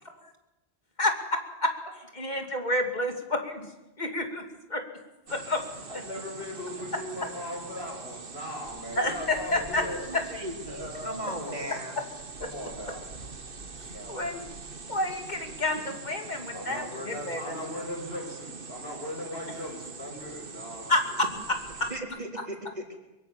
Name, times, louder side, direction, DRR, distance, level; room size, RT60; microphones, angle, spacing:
voice 1, 1.0-1.7 2.1-3.7 4.0-4.4 4.7-4.8 5.3-5.6 9.0-9.8 10.1-10.2 14.1-14.4 14.9-17.5 20.9-21.9, left 2 dB, 40° left, 5 dB, 2.9 m, -29 dB
sound 1, 5.3-22.0, right 4 dB, 55° right, 1.5 m, -43 dB
voice 2, 5.9-10.2 10.7-11.7 12.4-13.0 13.8-14.3 16.5-20.9, left 1 dB, 65° left, 1 dB, 6.5 m, -38 dB
voice 3, 10.1-12.0 21.9-23.0, equal, 40° right, 1 dB, 4.1 m, -37 dB
23.5 x 23.0 x 7.2 m, 0.97 s
omnidirectional pair, 1.1 m